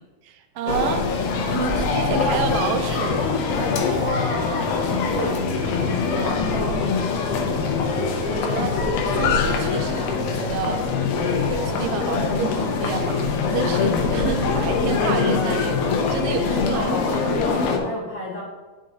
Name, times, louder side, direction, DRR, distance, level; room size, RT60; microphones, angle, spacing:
voice 1, 0.2-1.0 1.5-3.3 7.5-7.6 7.9-8.7 9.0-10.8 11.2-13.2 13.5-17.2, right 6 dB, 75° right, 6 dB, 2.2 m, -29 dB
sound 1, 0.7-17.8, left 4 dB, 80° left, 2.6 m, -23 dB
voice 2, 3.6-5.4 5.7-7.1 16.5-18.4, left 1 dB, 40° left, -7 dB, 3.4 m, -31 dB
10.0 x 6.3 x 2.8 m, 1.3 s
omnidirectional pair, 4.3 m